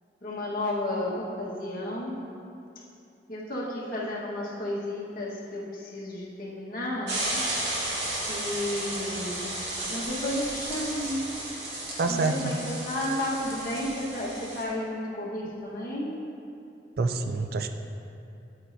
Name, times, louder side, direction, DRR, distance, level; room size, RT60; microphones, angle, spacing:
voice 1, 0.2-2.2 3.3-7.2 8.3-9.5 9.9-11.2 12.1-16.2, left 1 dB, 50° left, -5 dB, 1.5 m, -32 dB
sound 1, 7.1-14.6, right 1 dB, 75° right, 2.0 m, -33 dB
voice 2, 12.0-12.4 17.0-17.7, right 3 dB, 55° right, 6 dB, 0.4 m, -26 dB
9.4 x 8.5 x 2.7 m, 2.6 s
head